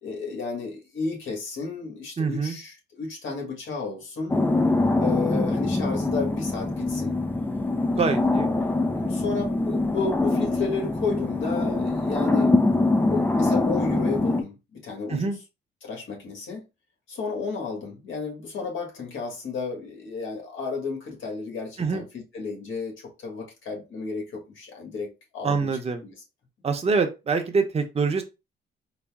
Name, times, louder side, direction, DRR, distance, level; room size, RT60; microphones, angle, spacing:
voice 1, 0.0-4.4 5.0-7.2 9.0-12.6 13.1-15.3 15.8-16.6 17.1-26.1, left 4 dB, 75° left, 1.7 m, -33 dB
voice 2, 2.2-2.6 7.9-8.5 15.1-15.4 21.8-22.0 25.4-26.0 26.6-28.2, right 4 dB, 30° right, 0.8 m, -25 dB
sound 1, 4.3-14.4, left 2 dB, 10° left, 0.4 m, -24 dB
4.1 x 2.1 x 3.5 m
cardioid pair, 90°, 20 cm